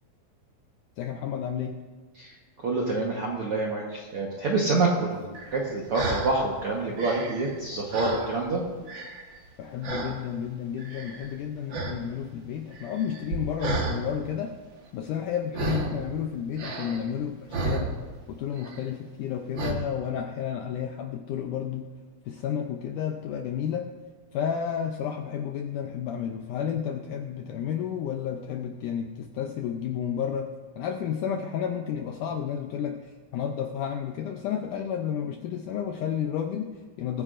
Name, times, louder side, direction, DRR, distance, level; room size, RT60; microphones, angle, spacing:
voice 1, 1.0-1.8 9.6-14.6 14.9-18.0 18.3-21.9 22.3-23.9 24.3-30.5 30.8-37.2, left 8 dB, 80° left, 4 dB, 1.8 m, -31 dB
voice 2, 2.6-8.6, right 3 dB, 65° right, -2 dB, 1.4 m, -27 dB
sound 1, 5.3-6.4 6.8-8.6 8.9-9.5 9.8-10.2 10.8-11.4 11.7-12.0 12.3-14.0 15.5-16.0 16.6-18.3 18.6-18.9 19.5-19.7, right 3 dB, 85° right, 1.0 m, -32 dB
22.5 x 9.6 x 2.5 m, 1.4 s
omnidirectional pair, 4.3 m